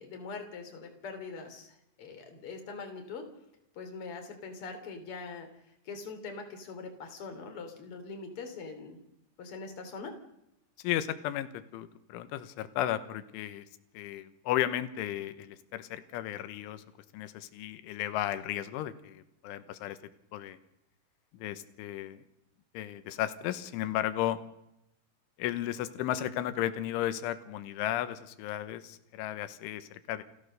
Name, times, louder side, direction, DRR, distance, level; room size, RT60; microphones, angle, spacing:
voice 1, 0.0-3.3 3.7-9.0 9.4-10.1, left 4 dB, 35° left, 5 dB, 3.6 m, -43 dB
voice 2, 10.8-13.7 14.0-16.8 17.1-20.0 20.3-20.6 21.4-22.2 22.8-24.4 25.4-30.2, left 12 dB, 90° left, 12 dB, 3.6 m, -34 dB
29.0 x 14.5 x 6.6 m, 0.83 s
omnidirectional pair, 5.4 m